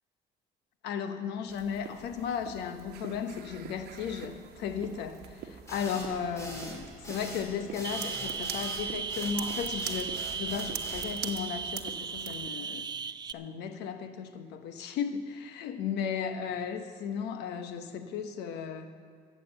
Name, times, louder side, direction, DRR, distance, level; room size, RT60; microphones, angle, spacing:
voice 1, 0.8-12.9 13.3-18.9, left 7 dB, 85° left, 8 dB, 1.0 m, -35 dB
sound 1, 1.5-12.5, right 9 dB, 70° right, 1.1 m, -45 dB
sound 2, 5.7-11.1, right 1 dB, 15° left, 3.5 m, -42 dB
sound 3, 7.8-13.3, right 6 dB, 25° right, 0.4 m, -36 dB
14.0 x 7.7 x 8.2 m, 2.1 s
cardioid pair, 110°, 17 cm